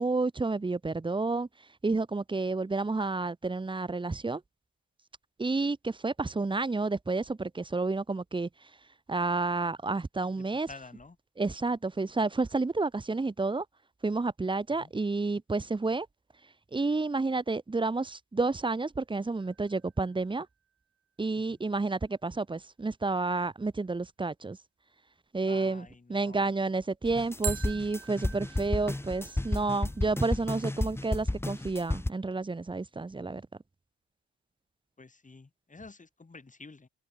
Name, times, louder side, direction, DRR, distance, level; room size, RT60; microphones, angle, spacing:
voice 1, 0.0-1.5 1.8-4.4 5.4-8.5 9.1-10.7 11.4-13.6 14.0-16.1 16.7-20.5 21.2-24.6 25.3-33.4, right 3 dB, 15° right, 0.8 m, -30 dB
voice 2, 10.4-11.2 14.8-14.9 21.3-21.6 25.5-26.5 35.0-36.9, left 3 dB, 25° left, 2.9 m, -50 dB
sound 1, 19.4-20.4 27.4-30.4, right 8 dB, 50° right, 0.9 m, -43 dB
sound 2, 27.0-32.1, left 1 dB, 10° left, 0.8 m, -32 dB
cardioid pair, 75°, 29 cm